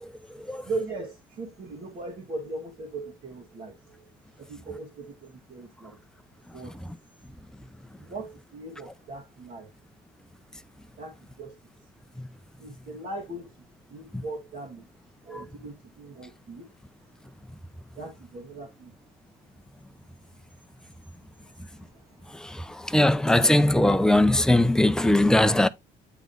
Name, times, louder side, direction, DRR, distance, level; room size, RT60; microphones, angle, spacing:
voice 1, 0.3-6.0 6.5-6.9 7.9-9.7 11.0-11.6 12.6-14.9 15.2-16.7 17.0-17.1 17.9-19.0 20.2-20.3 21.4-22.4, right 2 dB, 50° right, 1.7 m, -39 dB
voice 2, 22.9-25.7, left 1 dB, 5° left, 0.5 m, -19 dB
9.2 x 3.1 x 3.8 m
cardioid pair, 110°, 17 cm